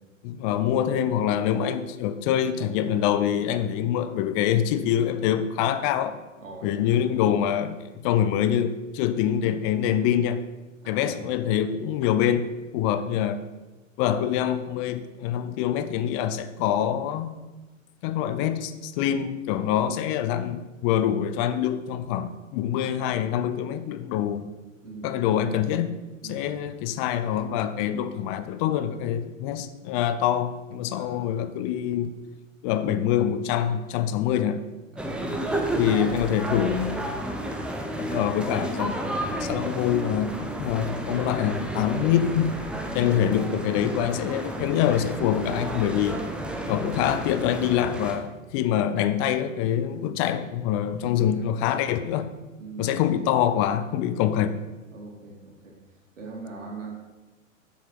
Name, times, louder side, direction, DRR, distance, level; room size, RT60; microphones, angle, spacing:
voice 1, 0.2-6.2 6.6-10.4 10.9-12.5 12.7-13.4 14.0-17.3 18.0-24.4 25.0-26.0 26.3-32.2 32.6-34.7 35.8-36.9 38.0-42.5 42.9-46.3 46.7-52.3 52.8-54.6, left 10 dB, 25° left, 11 dB, 0.5 m, -25 dB
voice 2, 6.4-6.9 10.8-11.2 24.8-25.5 26.2-26.6 30.9-31.3 34.9-36.1 50.0-50.2 52.6-53.1 54.9-55.8 56.2-56.9, right 3 dB, 65° right, -1 dB, 3.4 m, -42 dB
sound 1, 35.0-48.2, right 1 dB, ahead, 0.8 m, -31 dB
9.1 x 7.2 x 5.9 m, 1.1 s
figure-of-eight pair, 105°, 40 cm